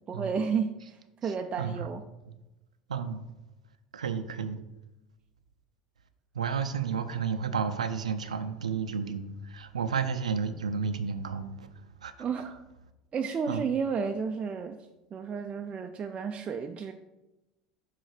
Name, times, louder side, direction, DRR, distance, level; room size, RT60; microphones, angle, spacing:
voice 1, 0.1-2.0 12.2-12.6 13.1-14.8 15.1-16.9, right 6 dB, 35° right, 5 dB, 0.4 m, -32 dB
voice 2, 1.2-1.9 2.9-3.2 3.9-4.6 6.3-12.1 13.5-13.6, right 6 dB, 90° right, 10 dB, 0.5 m, -32 dB
6.3 x 3.8 x 4.9 m, 1.0 s
hypercardioid pair, 80°, 4 cm